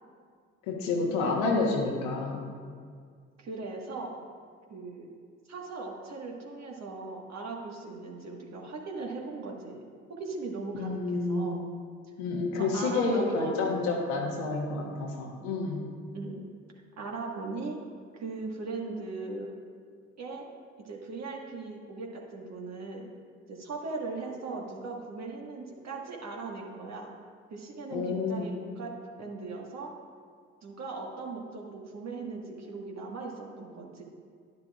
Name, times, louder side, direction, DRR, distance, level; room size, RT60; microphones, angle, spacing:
voice 1, 0.7-2.4 10.7-11.6 12.2-15.9 27.9-28.5, left 3 dB, 70° left, 0 dB, 1.3 m, -29 dB
voice 2, 3.4-4.1 4.7-5.1 5.5-9.8 10.1-10.9 11.3-11.6 12.5-13.8 16.1-16.5 17.0-17.8 18.1-19.5 20.2-20.5 20.8-23.1 23.5-27.1 27.5-28.9 29.2-29.9 30.6-34.0, right 3 dB, 45° right, 0 dB, 1.6 m, -39 dB
10.5 x 10.5 x 2.4 m, 2.1 s
figure-of-eight pair, 45°, 37 cm